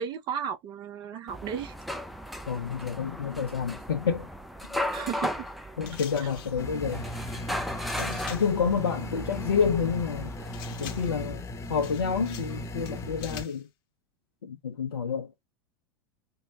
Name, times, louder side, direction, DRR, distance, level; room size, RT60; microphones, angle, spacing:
voice 1, 0.0-1.7 4.9-5.5 6.2-6.3, right 8 dB, 40° right, 0.8 m, -34 dB
sound 1, 1.3-11.1, left 1 dB, ahead, 0.5 m, -37 dB
voice 2, 2.5-4.3 5.8-7.1 8.0-10.3 10.8-13.7 14.4-15.3, left 6 dB, 75° left, 0.7 m, -29 dB
sound 2, 5.9-6.6 7.9-8.6 10.5-11.2 11.8-12.6 12.9-13.6, left 10 dB, 55° left, 1.0 m, -45 dB
sound 3, 6.6-13.4, left 1 dB, 20° left, 0.9 m, -37 dB
4.5 x 2.1 x 3.5 m
figure-of-eight pair, 90°, 13 cm